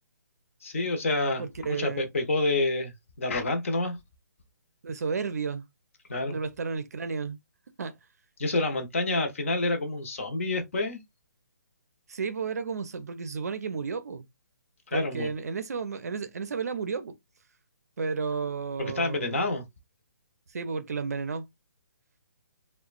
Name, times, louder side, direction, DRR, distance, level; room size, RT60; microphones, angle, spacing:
voice 1, 0.6-4.0 6.1-6.4 8.4-11.0 14.9-15.3 18.8-19.7, left 2 dB, 45° left, 0.7 m, -28 dB
voice 2, 1.4-2.1 4.8-5.7 6.3-7.4 7.8-7.9 12.1-14.3 14.9-17.1 18.0-19.4 20.5-21.5, right 5 dB, 60° right, 0.5 m, -32 dB
2.9 x 2.1 x 2.4 m
hypercardioid pair, 175°, 10 cm